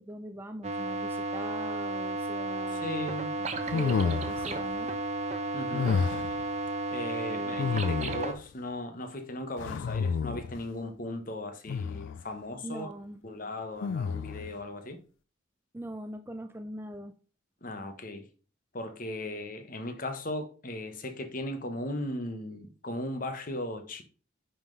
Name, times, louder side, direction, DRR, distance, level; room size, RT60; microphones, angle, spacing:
voice 1, 0.0-2.9 3.4-4.9 7.3-7.8 12.6-13.2 15.7-17.2, right 1 dB, 10° right, 0.4 m, -42 dB
sound 1, 0.6-8.3, right 2 dB, 35° right, 0.8 m, -33 dB
voice 2, 2.7-3.4 5.5-6.0 6.9-12.9 13.2-15.0 17.6-18.2 18.7-24.0, left 1 dB, 45° left, 1.1 m, -37 dB
sound 2, 3.7-4.6 5.7-6.4 7.6-8.4 9.6-10.6 11.7-12.2 13.8-14.5, left 5 dB, 70° left, 0.3 m, -30 dB
9.8 x 3.9 x 4.0 m
head